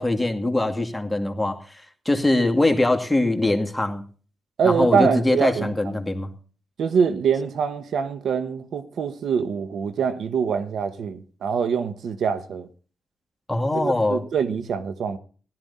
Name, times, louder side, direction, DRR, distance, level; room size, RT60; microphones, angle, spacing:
voice 1, 0.0-1.6 2.1-4.0 4.6-6.3 13.5-14.2, left 2 dB, 10° left, 2.3 m, -22 dB
voice 2, 4.6-6.0 6.8-12.7 13.7-15.2, right 6 dB, 85° right, 1.0 m, -24 dB
16.5 x 12.5 x 4.2 m
cardioid pair, 70°, 0 cm